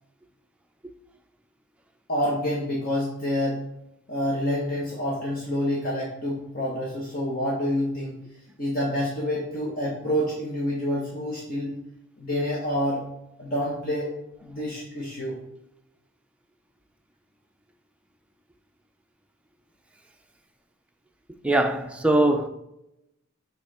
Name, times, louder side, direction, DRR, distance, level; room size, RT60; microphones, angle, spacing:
voice 1, 2.1-3.6 4.1-8.1 8.6-11.7 12.2-13.0 13.4-14.1 14.4-15.4, equal, 45° left, 1.4 m, -27 dB
voice 2, 21.4-22.5, right 1 dB, 5° right, 0.5 m, -21 dB
5.7 x 4.6 x 4.2 m
head